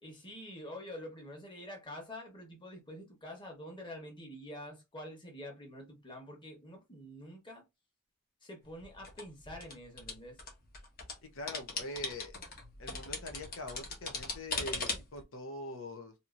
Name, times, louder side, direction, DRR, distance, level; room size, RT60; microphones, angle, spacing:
voice 1, 0.0-7.6 8.4-10.4, left 1 dB, 25° left, 1.2 m, -47 dB
sound 1, 8.6-11.1 11.5-15.2, left 3 dB, 50° left, 1.1 m, -39 dB
voice 2, 11.3-12.3 12.8-16.1, left 1 dB, 90° left, 0.8 m, -43 dB
2.9 x 2.8 x 2.4 m
head